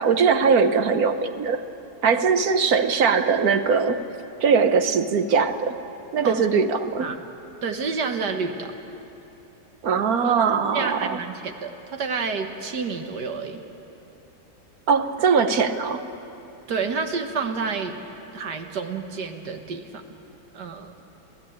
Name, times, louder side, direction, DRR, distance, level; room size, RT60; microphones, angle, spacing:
voice 1, 0.0-1.6 2.0-4.0 4.4-5.8 6.1-7.1 9.8-11.2 14.9-16.0, right 5 dB, 65° right, 9 dB, 1.4 m, -21 dB
voice 2, 7.6-8.7 10.2-10.4 10.7-13.6 16.7-18.0 18.3-20.0 20.5-20.9, right 5 dB, 90° right, 5 dB, 2.0 m, -29 dB
27.5 x 16.5 x 8.7 m, 3.0 s
omnidirectional pair, 1.7 m